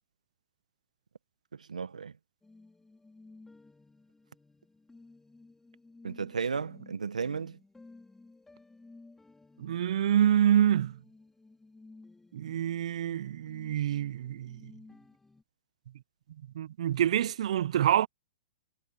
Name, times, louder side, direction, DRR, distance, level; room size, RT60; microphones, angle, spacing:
voice 1, 1.6-2.1 6.0-7.6, right 5 dB, 85° right, 1.5 m, -34 dB
sound 1, 2.4-15.4, left 3 dB, 5° left, 5.7 m, -56 dB
voice 2, 9.6-11.0 12.3-14.7 16.5-18.1, right 10 dB, 65° right, 0.7 m, -26 dB
hypercardioid pair, 120°, 4 cm